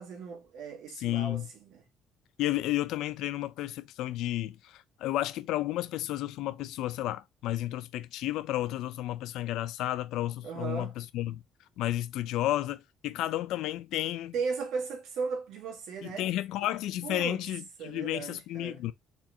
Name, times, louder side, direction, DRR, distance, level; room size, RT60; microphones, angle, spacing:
voice 1, 0.0-1.8 10.4-10.9 14.3-16.3 17.0-17.4 17.8-18.8, right 5 dB, 75° right, 2.1 m, -36 dB
voice 2, 1.0-1.5 2.4-11.4 11.8-14.3 16.0-18.9, left 14 dB, 80° left, 0.5 m, -32 dB
4.4 x 4.3 x 2.7 m
cardioid pair, 115°, 0 cm